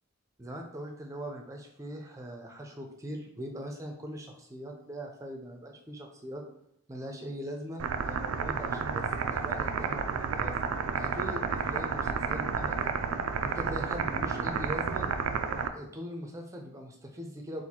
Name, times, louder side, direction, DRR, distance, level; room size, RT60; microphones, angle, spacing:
voice 1, 0.4-6.4 6.9-10.5 10.9-13.0 13.4-15.1 15.6-17.6, equal, 15° right, 2 dB, 0.5 m, -41 dB
sound 1, 7.8-15.7, right 5 dB, 85° right, 0.4 m, -31 dB
4.1 x 2.5 x 4.3 m, 0.72 s
head